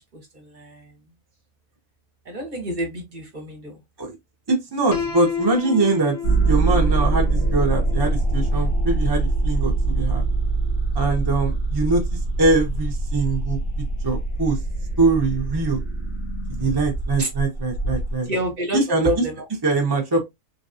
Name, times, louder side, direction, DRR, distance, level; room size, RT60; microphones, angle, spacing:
voice 1, 0.1-0.9 2.3-3.8 17.2-17.3 18.2-18.8 19.0-19.5, equal, 40° right, 0.9 m, -28 dB
voice 2, 4.5-6.2 6.4-10.2 10.9-14.6 15.0-15.8 16.5-18.3 18.7-19.1 19.6-20.2, right 3 dB, 25° right, 0.5 m, -22 dB
Piano, 4.9-10.8, left 6 dB, 60° left, 0.9 m, -34 dB
sound 1, 6.2-18.1, right 2 dB, 85° left, 1.5 m, -23 dB
3.4 x 2.2 x 2.6 m
omnidirectional pair, 1.4 m